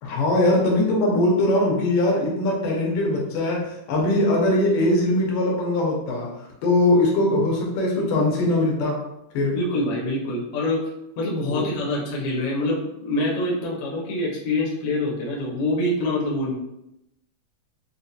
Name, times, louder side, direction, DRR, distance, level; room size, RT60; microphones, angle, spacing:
voice 1, 0.0-6.4 6.6-9.0 9.3-9.6 11.5-11.7, left 1 dB, 85° left, -1 dB, 2.5 m, -21 dB
voice 2, 9.5-10.8 11.2-16.5, left 1 dB, 70° left, -4 dB, 1.5 m, -25 dB
5.8 x 2.2 x 2.7 m, 0.85 s
omnidirectional pair, 3.9 m